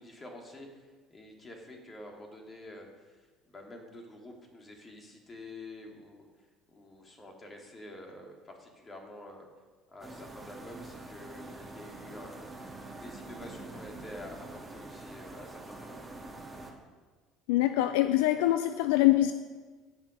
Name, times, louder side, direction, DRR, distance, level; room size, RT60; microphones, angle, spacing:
voice 1, 0.0-6.3 6.7-9.5 9.9-12.5 13.0-16.1, left 1 dB, 25° left, 1 dB, 2.9 m, -48 dB
sound 1, 10.0-16.7, right 2 dB, 15° right, 2.9 m, -45 dB
voice 2, 17.5-19.3, left 15 dB, 70° left, 10 dB, 0.4 m, -24 dB
16.5 x 5.9 x 5.4 m, 1.4 s
figure-of-eight pair, 60°, 0 cm